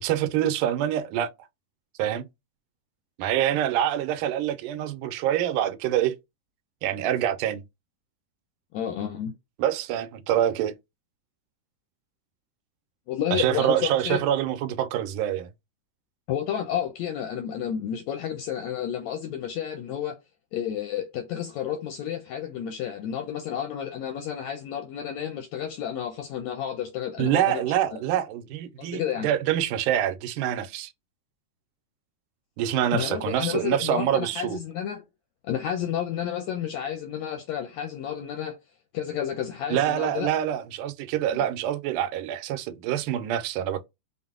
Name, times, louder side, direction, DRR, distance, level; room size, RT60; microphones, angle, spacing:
voice 1, 0.0-1.3 2.0-2.3 3.2-6.2 6.8-7.6 9.6-10.8 13.3-15.5 27.2-30.9 32.6-34.6 39.7-43.9, right 11 dB, 90° right, 2.1 m, -26 dB
voice 2, 8.7-9.3 13.1-14.2 16.3-20.2 20.5-28.0 28.8-29.3 32.9-35.0 35.4-38.6 38.9-40.3, left 9 dB, 80° left, 1.6 m, -31 dB
5.5 x 2.0 x 3.6 m
omnidirectional pair, 3.6 m